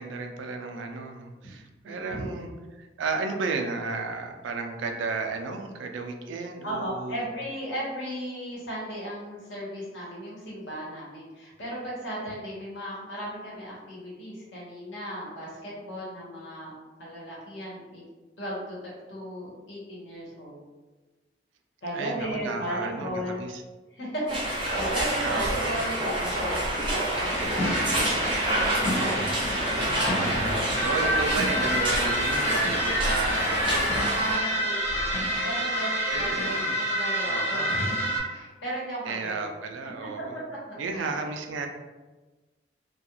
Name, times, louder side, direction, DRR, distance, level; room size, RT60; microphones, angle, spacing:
voice 1, 0.0-2.5 2.8-7.3 21.9-23.6 25.2-25.8 30.8-33.9 36.1-36.8 37.2-37.7 39.0-40.4 40.8-41.7, right 4 dB, 85° right, 4 dB, 0.3 m, -33 dB
voice 2, 1.8-2.3 6.6-16.7 17.0-18.0 18.4-20.6 21.8-23.5 23.9-30.4 34.1-39.5 40.9-41.2, equal, 75° left, -6 dB, 1.0 m, -36 dB
sound 1, 24.3-34.4, right 1 dB, 25° right, 0.5 m, -28 dB
sound 2, 27.1-38.2, equal, 35° left, 1.2 m, -28 dB
2.3 x 2.2 x 2.9 m, 1.2 s
head